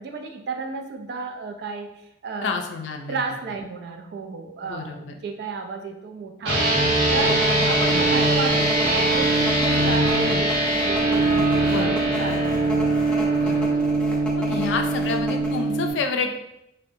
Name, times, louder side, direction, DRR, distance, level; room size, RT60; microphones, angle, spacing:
voice 1, 0.0-1.9 2.2-2.5 3.1-6.6 7.1-12.7, right 4 dB, 60° right, 4 dB, 0.3 m, -32 dB
voice 2, 2.4-3.2 4.6-5.2 11.6-12.1 13.3-13.8 14.4-16.4, left 4 dB, 85° left, 4 dB, 0.3 m, -29 dB
sound 1, 6.4-15.9, right 2 dB, 85° right, 0.8 m, -21 dB
sound 2, 7.2-15.6, left 2 dB, 5° left, 0.4 m, -33 dB
2.5 x 2.1 x 2.6 m, 0.84 s
head